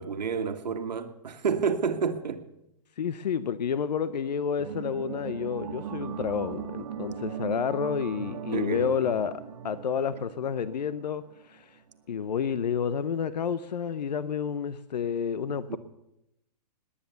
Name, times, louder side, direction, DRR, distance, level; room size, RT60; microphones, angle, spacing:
voice 1, 0.0-2.4 8.5-8.9 15.7-15.8, right 6 dB, 90° right, 1.7 m, -29 dB
voice 2, 3.0-11.7 12.1-15.8, left 7 dB, 85° left, 0.8 m, -30 dB
sound 1, 4.6-11.6 11.9-12.0, right 8 dB, 55° right, 1.0 m, -38 dB
18.5 x 9.9 x 6.9 m
hypercardioid pair, 155°, 21 cm